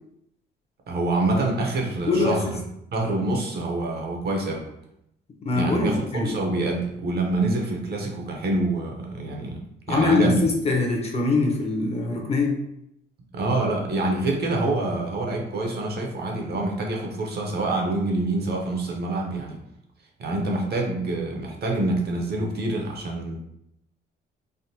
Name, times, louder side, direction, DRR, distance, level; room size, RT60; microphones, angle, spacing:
voice 1, 0.9-2.5 2.9-4.7 5.5-9.6 9.9-10.5 13.3-19.6 20.2-23.4, right 2 dB, 55° right, 0 dB, 0.8 m, -26 dB
voice 2, 2.1-2.4 5.4-6.3 9.9-12.6, left 3 dB, 30° left, 1 dB, 0.7 m, -23 dB
3.4 x 2.1 x 2.7 m, 0.79 s
cardioid pair, 90°, 20 cm